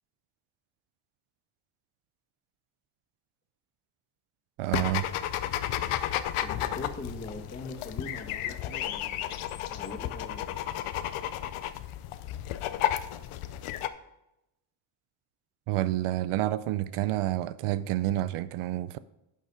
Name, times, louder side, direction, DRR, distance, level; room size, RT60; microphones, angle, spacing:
voice 1, 4.6-5.1 15.7-19.0, right 15 dB, 90° right, 0.6 m, -29 dB
sound 1, 4.7-13.9, left 12 dB, 90° left, 0.8 m, -33 dB
voice 2, 6.4-10.6, left 2 dB, 20° left, 1.8 m, -42 dB
11.5 x 6.5 x 4.9 m
cardioid pair, 130°, 49 cm